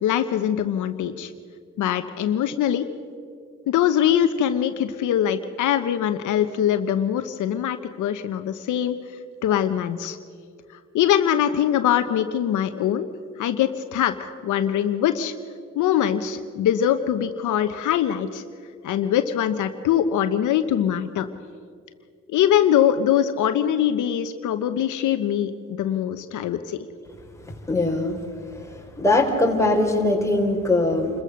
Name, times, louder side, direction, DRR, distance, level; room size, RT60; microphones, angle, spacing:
voice 1, 0.0-1.3 1.8-2.9 3.7-9.0 9.4-10.2 10.9-13.1 13.4-15.3 15.8-18.4 18.8-21.3 22.3-26.8, left 10 dB, 80° left, 9 dB, 1.0 m, -22 dB
voice 2, 27.7-28.2 28.6-31.1, left 2 dB, 10° left, 1 dB, 3.8 m, -21 dB
27.5 x 15.0 x 6.5 m, 2.2 s
cardioid pair, 90°, 30 cm